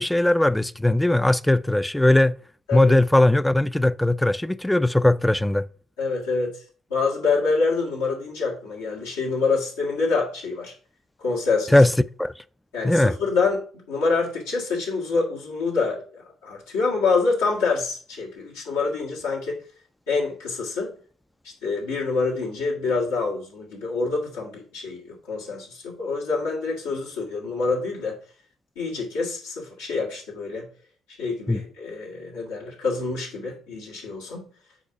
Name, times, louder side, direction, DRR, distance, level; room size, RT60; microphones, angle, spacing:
voice 1, 0.0-2.3 2.7-5.6 11.7-11.9 12.2-12.3 12.8-13.1 31.5-31.6, left 1 dB, 10° left, 0.3 m, -19 dB
voice 2, 6.0-6.5 6.9-10.7 11.2-11.8 12.7-19.6 20.1-20.9 21.4-28.2 28.8-30.7 31.2-34.4, left 4 dB, 90° left, 1.8 m, -26 dB
4.9 x 4.0 x 5.5 m
hypercardioid pair, 50°, 0 cm